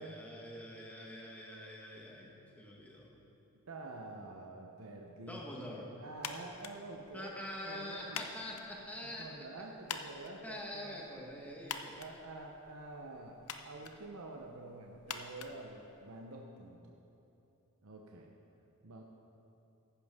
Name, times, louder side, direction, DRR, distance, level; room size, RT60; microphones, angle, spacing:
voice 1, 0.0-3.2 5.3-5.9 7.1-9.5 10.4-12.0, left 1 dB, 5° left, -2 dB, 1.4 m, -45 dB
voice 2, 3.7-7.3 7.6-8.2 9.2-11.3 12.0-17.0 17.8-18.3 18.8-19.0, right 2 dB, 75° right, 1 dB, 0.8 m, -48 dB
sound 1, 6.2-16.4, left 6 dB, 80° left, 0.7 m, -48 dB
14.5 x 11.0 x 3.6 m, 3.0 s
head